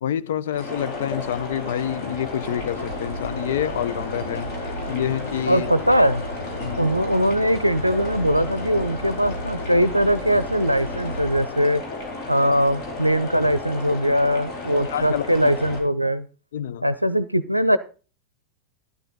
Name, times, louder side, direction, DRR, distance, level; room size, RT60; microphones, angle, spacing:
voice 1, 0.0-4.5 4.9-5.7 6.6-6.9 14.7-15.3 16.5-16.9, left 10 dB, 60° left, 0.6 m, -27 dB
sound 1, 0.5-15.8, left 2 dB, 40° left, 4.2 m, -33 dB
sound 2, 2.4-11.4, equal, 80° left, 1.9 m, -35 dB
voice 2, 5.5-6.2 6.8-11.8 12.3-16.3 16.8-17.8, equal, 90° right, 0.5 m, -21 dB
12.0 x 11.0 x 3.9 m
figure-of-eight pair, 90°, 0 cm